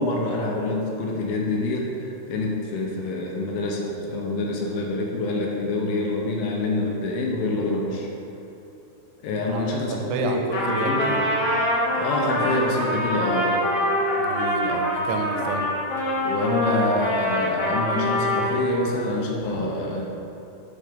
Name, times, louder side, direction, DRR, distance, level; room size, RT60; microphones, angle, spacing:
voice 1, 0.0-8.1 9.2-11.2 12.0-13.5 16.2-20.1, left 2 dB, 80° left, -1 dB, 2.5 m, -26 dB
voice 2, 9.3-10.4 10.7-11.3 14.1-15.7 19.5-19.6, right 4 dB, 85° right, 3 dB, 2.7 m, -31 dB
Trumpet, 10.5-18.6, left 1 dB, 55° left, 1.7 m, -25 dB
8.4 x 4.3 x 5.2 m, 2.9 s
omnidirectional pair, 4.6 m